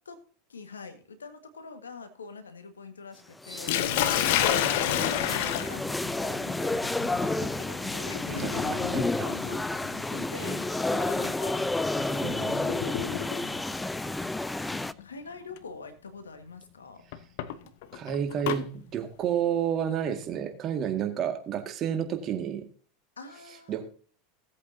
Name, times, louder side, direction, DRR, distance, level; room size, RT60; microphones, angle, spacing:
voice 1, 0.5-8.8 9.2-12.6 13.3-13.7 15.0-17.0 23.2-23.8, left 4 dB, 85° left, 9 dB, 1.6 m, -45 dB
sound 1, 3.4-14.9, left 2 dB, 10° left, 0.5 m, -31 dB
Sink (filling or washing), 3.7-13.6 14.7-15.0 15.6-15.7 17.1-18.6, left 11 dB, 65° left, 0.9 m, -31 dB
voice 2, 4.0-4.4 8.3-9.0 12.2-12.6 14.0-14.1 17.9-22.7 23.7-23.9, right 9 dB, 40° right, 6 dB, 1.9 m, -31 dB
17.5 x 8.2 x 2.8 m, 0.42 s
hypercardioid pair, 85°, 0 cm